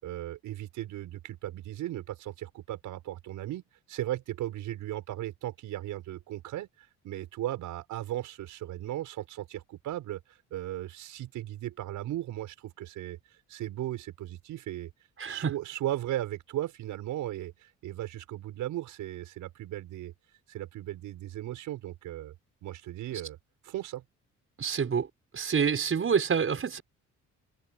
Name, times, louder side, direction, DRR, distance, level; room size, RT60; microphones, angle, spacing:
voice 1, 0.0-3.6 3.9-13.2 13.5-14.9 15.2-20.1 20.5-22.3 22.6-23.4 23.6-24.0, right 14 dB, 85° right, 6.8 m, -36 dB
voice 2, 15.2-15.5 24.6-25.1 25.3-26.8, right 6 dB, 45° right, 5.8 m, -27 dB
cardioid pair, 90°, 30 cm